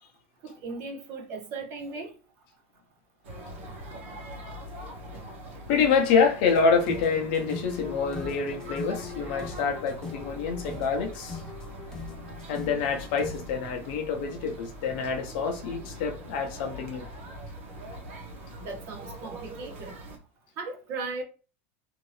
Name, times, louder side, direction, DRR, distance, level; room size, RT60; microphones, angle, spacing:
voice 1, 0.4-2.1 18.6-19.9 20.6-21.2, right 3 dB, 35° right, 0.7 m, -37 dB
sound 1, 3.2-20.2, right 1 dB, 80° right, 1.0 m, -42 dB
voice 2, 5.7-11.4 12.5-17.0, left 5 dB, 55° left, 0.7 m, -26 dB
sound 2, 6.5-13.6, left 5 dB, 10° left, 0.5 m, -41 dB
2.7 x 2.5 x 3.1 m
supercardioid pair, 160°, 7 cm